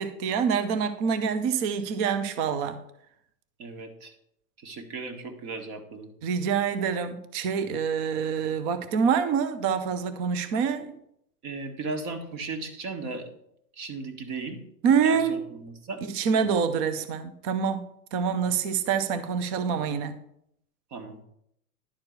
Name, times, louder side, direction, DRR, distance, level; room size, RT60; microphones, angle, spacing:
voice 1, 0.0-2.8 6.2-11.0 14.8-15.3 16.0-17.8 18.1-20.2, right 6 dB, 20° right, 11 dB, 0.4 m, -26 dB
voice 2, 3.6-4.1 4.6-6.1 11.4-13.3 13.7-14.6 15.0-16.0 18.3-18.4 20.9-21.2, right 3 dB, 35° right, 6 dB, 1.6 m, -36 dB
10.5 x 4.4 x 6.4 m, 0.74 s
hypercardioid pair, 120°, 48 cm